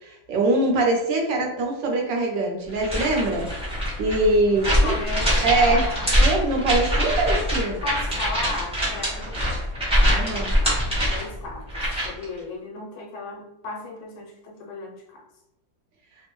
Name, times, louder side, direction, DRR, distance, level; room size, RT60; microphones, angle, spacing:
voice 1, 0.0-3.5 4.0-5.0 5.4-5.8 6.2-7.8 10.1-10.6, right 2 dB, 70° right, 1 dB, 1.3 m, -23 dB
sound 1, 2.7-12.2, equal, 5° right, 0.8 m, -23 dB
voice 2, 4.7-6.1 7.7-9.5 11.1-15.2, left 3 dB, 80° left, -1 dB, 1.5 m, -35 dB
3.5 x 2.1 x 3.0 m, 0.89 s
omnidirectional pair, 2.1 m